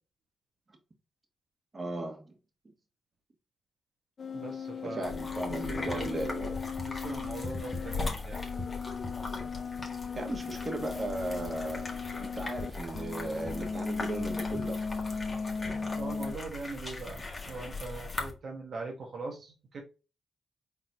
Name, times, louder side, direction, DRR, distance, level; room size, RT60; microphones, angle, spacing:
voice 1, 1.7-2.3 4.8-6.6 10.1-11.9 12.2-14.8, right 2 dB, 35° right, 1.7 m, -36 dB
sound 1, 4.2-12.7 12.9-16.3, left 5 dB, 55° left, 0.5 m, -37 dB
voice 2, 4.3-5.1 5.7-6.1 6.9-8.4 16.0-19.8, right 3 dB, 65° right, 1.3 m, -41 dB
sound 2, 5.0-18.3, left 3 dB, 30° left, 1.8 m, -39 dB
4.5 x 4.0 x 2.6 m
cardioid pair, 55°, 0 cm